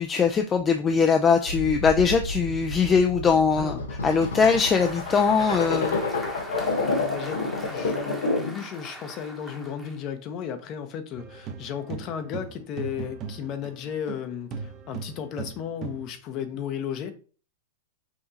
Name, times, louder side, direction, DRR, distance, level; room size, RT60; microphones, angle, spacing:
voice 1, 0.0-6.0, left 5 dB, 20° left, 0.4 m, -21 dB
sound 1, 1.4-8.6, left 3 dB, 90° left, 1.0 m, -29 dB
Applause, 4.0-10.0, equal, 5° left, 1.0 m, -42 dB
voice 2, 6.8-7.4 7.7-17.1, left 8 dB, 40° left, 0.8 m, -34 dB
sound 2, 11.2-14.2 14.5-16.1, right 6 dB, 35° right, 0.7 m, -38 dB
5.8 x 2.8 x 2.8 m
hypercardioid pair, 125°, 0 cm